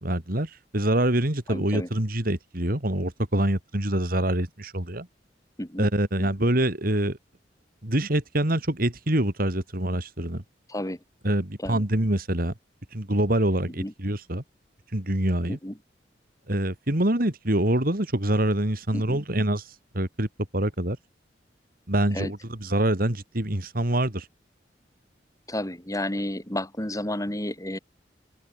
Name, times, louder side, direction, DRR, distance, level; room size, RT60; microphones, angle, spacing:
voice 1, 0.0-5.1 5.8-7.2 7.8-10.4 11.2-12.5 12.9-14.4 14.9-15.6 16.5-19.7 19.9-20.3 20.5-21.0 21.9-24.3, right 1 dB, 55° right, 3.2 m, -25 dB
voice 2, 1.5-1.9 5.6-5.9 6.2-6.3 10.7-11.0 11.6-11.8 13.8-13.9 15.5-15.7 18.9-19.2 22.1-22.3 25.5-27.8, left 1 dB, 20° left, 4.5 m, -31 dB
open air
head